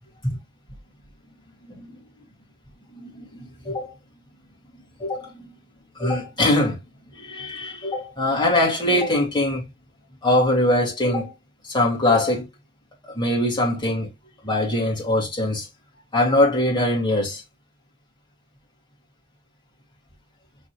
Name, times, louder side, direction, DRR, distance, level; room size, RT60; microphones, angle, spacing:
voice 1, 1.7-2.0 2.9-3.9 5.0-5.5 5.9-6.8 7.1-9.6 10.2-11.3 11.6-12.5 13.1-14.1 14.4-15.7 16.1-17.4, left 1 dB, 20° left, 1.6 m, -22 dB
4.6 x 3.2 x 2.8 m
head